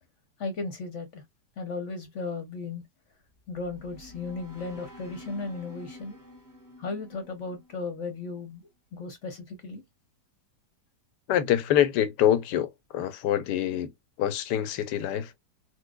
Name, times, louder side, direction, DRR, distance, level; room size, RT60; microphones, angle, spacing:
voice 1, 0.4-1.2 1.6-2.8 3.5-6.2 6.8-8.6 8.9-9.8, left 3 dB, 55° left, 0.9 m, -35 dB
sound 1, 3.2-8.5, left 1 dB, 15° right, 0.9 m, -49 dB
voice 2, 11.3-13.9 14.2-15.3, left 11 dB, 85° left, 1.2 m, -25 dB
4.4 x 2.2 x 2.2 m
omnidirectional pair, 1.8 m